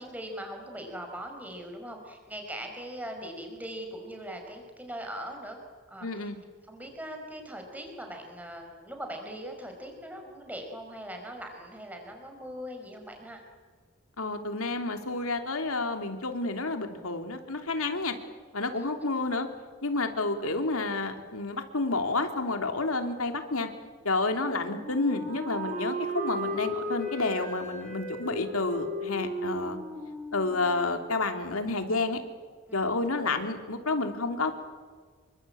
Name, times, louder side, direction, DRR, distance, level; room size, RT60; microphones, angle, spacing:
voice 1, 0.0-5.6 5.9-6.3 6.7-13.4 18.7-18.9 32.7-32.8, equal, 5° right, 3 dB, 5.0 m, -40 dB
voice 2, 6.0-6.4 14.2-18.1 18.5-19.5 19.8-23.7 24.0-29.8 30.3-32.2 32.7-34.6, left 3 dB, 90° left, 6 dB, 3.2 m, -30 dB
Wind instrument woodwind instrument, 24.4-31.2, equal, 35° right, 7.4 m, -35 dB
28.0 x 24.0 x 8.8 m, 1.5 s
head